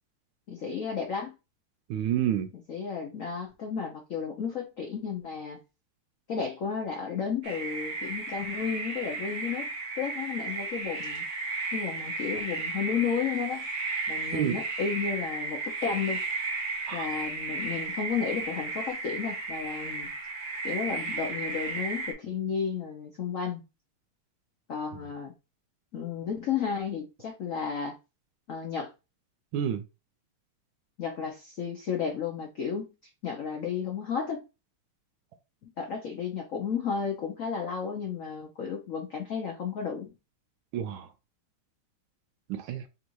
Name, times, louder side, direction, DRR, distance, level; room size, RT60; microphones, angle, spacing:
voice 1, 0.5-1.3 2.5-5.6 6.3-9.7 10.0-11.2 11.7-13.7 14.1-16.2 16.9-20.1 20.6-23.6 24.7-25.3 25.9-28.0 28.5-28.9 31.0-32.9 33.2-34.4 35.8-40.1, left 6 dB, 75° left, 0.7 m, -33 dB
voice 2, 1.9-2.5 14.3-14.6 16.9-17.1 24.9-25.0 29.5-29.8 40.7-41.1 42.5-42.8, right 10 dB, 75° right, 1.3 m, -29 dB
sound 1, 7.4-22.1, right 3 dB, 50° right, 1.5 m, -34 dB
3.6 x 2.6 x 4.5 m
omnidirectional pair, 2.4 m